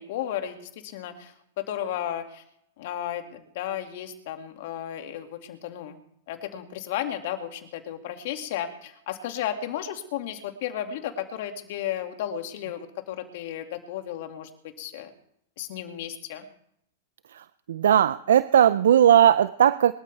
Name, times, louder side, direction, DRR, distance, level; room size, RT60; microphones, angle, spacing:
voice 1, 0.0-2.4 2.8-6.0 6.3-14.5 14.8-15.1 15.6-16.4, left 10 dB, 60° left, 6 dB, 2.3 m, -34 dB
voice 2, 17.3-19.9, right 10 dB, 75° right, 16 dB, 0.5 m, -18 dB
23.5 x 13.0 x 3.5 m, 0.71 s
hypercardioid pair, 115°, 0 cm